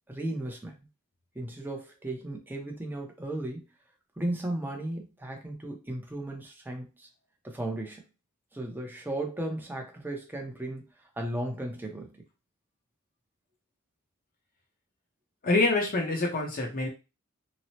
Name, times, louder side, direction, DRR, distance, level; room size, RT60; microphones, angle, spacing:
voice 1, 0.1-0.9 1.3-3.6 4.2-7.1 7.4-8.0 8.5-10.9 11.2-12.1, right 1 dB, 10° right, 2 dB, 0.5 m, -35 dB
voice 2, 15.4-16.9, left 2 dB, 40° left, -1 dB, 0.6 m, -26 dB
3.0 x 2.0 x 2.8 m, 0.29 s
head